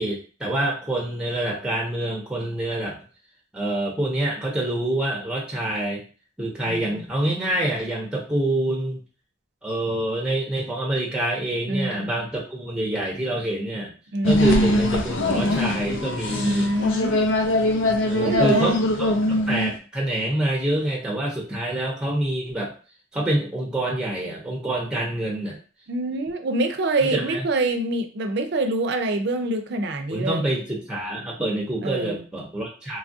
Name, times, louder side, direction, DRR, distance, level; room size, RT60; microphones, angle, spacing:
voice 1, 0.0-3.0 3.5-6.0 6.4-9.0 9.6-13.9 14.2-16.7 18.1-22.7 23.1-25.6 27.1-27.4 30.1-33.0, right 1 dB, 5° right, -2 dB, 0.6 m, -26 dB
voice 2, 6.6-7.0 11.7-12.1 14.1-14.5 16.3-17.2 18.2-18.8 25.9-30.4 31.8-32.2, right 2 dB, 60° right, 7 dB, 0.5 m, -25 dB
sound 1, 14.2-19.7, left 1 dB, 80° left, 0.5 m, -22 dB
3.1 x 2.3 x 2.6 m, 0.37 s
head